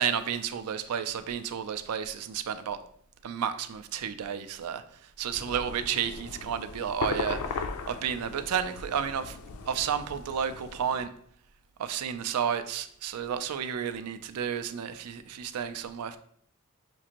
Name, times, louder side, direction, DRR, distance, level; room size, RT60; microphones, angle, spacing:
voice 1, 0.0-2.8 3.2-4.8 5.2-9.4 9.7-11.1 11.8-16.2, right 8 dB, 85° right, 10 dB, 0.4 m, -31 dB
sound 1, 5.3-11.1, left 4 dB, 70° left, 0.4 m, -38 dB
6.0 x 2.5 x 2.9 m, 0.65 s
head